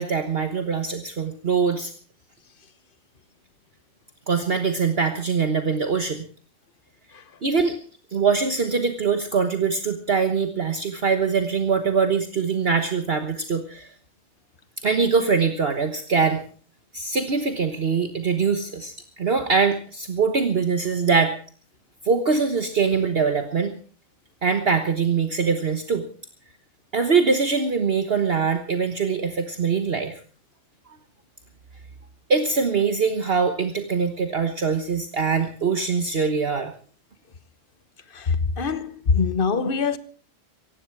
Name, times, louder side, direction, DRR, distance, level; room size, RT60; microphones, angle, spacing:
voice 1, 0.0-1.9 4.3-6.3 7.4-7.8 8.1-13.9 14.8-16.4 16.9-21.3 22.0-23.7 24.4-26.0 26.9-30.2 32.3-36.7, right 5 dB, 50° right, 1.4 m, -23 dB
voice 2, 38.1-40.0, left 5 dB, 45° left, 1.2 m, -23 dB
18.5 x 15.5 x 4.7 m
omnidirectional pair, 1.3 m